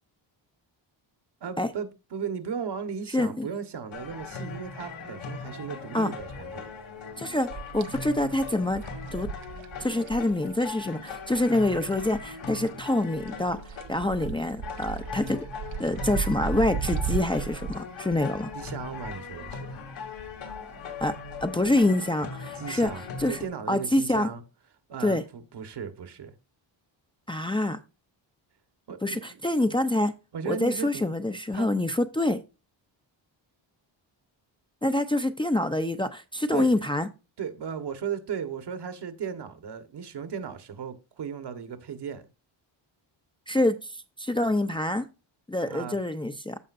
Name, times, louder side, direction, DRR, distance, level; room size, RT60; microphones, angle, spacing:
voice 1, 1.4-6.7 18.5-19.8 22.5-24.4 24.9-26.3 28.9-29.4 30.3-31.0 31.5-31.7 36.5-36.7 37.4-42.2 45.6-46.0, right 7 dB, 60° right, 1.5 m, -36 dB
voice 2, 3.1-3.5 5.9-6.1 7.2-7.5 7.7-8.8 9.1-9.3 9.8-13.6 13.9-15.4 15.8-18.5 21.0-21.2 21.4-22.9 23.2-23.4 23.7-24.3 25.0-25.2 27.3-27.8 29.0-30.1 30.5-32.4 34.8-37.1 43.5-43.9 44.2-45.1 45.5-46.6, left 1 dB, 10° left, 0.6 m, -26 dB
sound 1, 3.9-23.5, left 5 dB, 85° left, 3.0 m, -40 dB
sound 2, 7.5-12.3 12.6-17.7, right 6 dB, 75° right, 1.0 m, -35 dB
14.5 x 5.1 x 2.6 m
cardioid pair, 110°, 46 cm